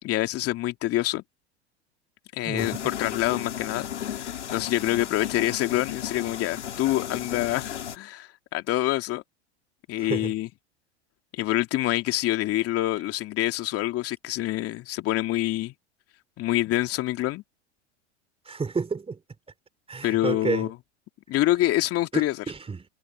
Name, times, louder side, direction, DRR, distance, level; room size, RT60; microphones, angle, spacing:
voice 1, 0.0-1.2 2.3-9.2 9.9-10.5 11.3-15.7 16.4-17.4 20.0-20.7 21.3-22.4, left 16 dB, 45° left, 2.8 m, -26 dB
sound 1, 2.6-8.0, left 10 dB, 85° left, 2.5 m, -35 dB
voice 2, 10.0-10.3 18.5-19.2 19.9-20.7 22.1-22.9, right 4 dB, 15° right, 3.2 m, -30 dB
hypercardioid pair, 90°, 34 cm